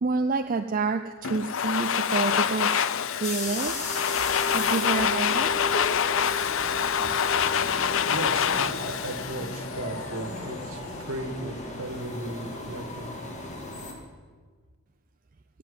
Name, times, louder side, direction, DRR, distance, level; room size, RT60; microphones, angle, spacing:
voice 1, 0.0-3.7 4.0-5.5, right 3 dB, 40° right, 6 dB, 0.5 m, -29 dB
Domestic sounds home sounds, 1.2-10.2, left 8 dB, 65° left, 0.6 m, -26 dB
sound 1, 3.2-13.9, left 1 dB, 35° left, 2.5 m, -36 dB
voice 2, 8.1-13.1, right 1 dB, 70° right, 6 dB, 1.9 m, -36 dB
19.0 x 7.7 x 9.5 m, 1.5 s
head